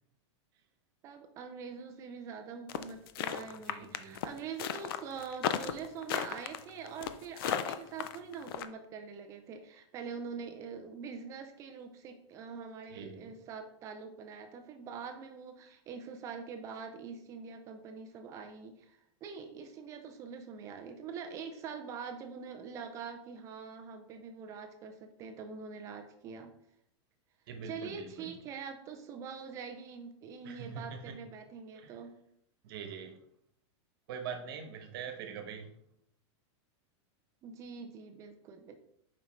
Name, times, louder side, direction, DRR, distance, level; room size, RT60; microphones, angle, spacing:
voice 1, 1.0-26.5 27.6-32.1 37.4-38.8, right 6 dB, 20° right, 6 dB, 0.4 m, -44 dB
sound 1, 2.7-8.7, left 10 dB, 50° left, 0.5 m, -34 dB
voice 2, 3.7-4.2 12.9-13.2 27.5-28.4 30.4-31.2 31.7-31.9 32.6-33.1 34.1-35.7, right 6 dB, 50° right, 5 dB, 1.2 m, -43 dB
7.0 x 5.1 x 3.2 m, 0.71 s
supercardioid pair, 170°, 15 cm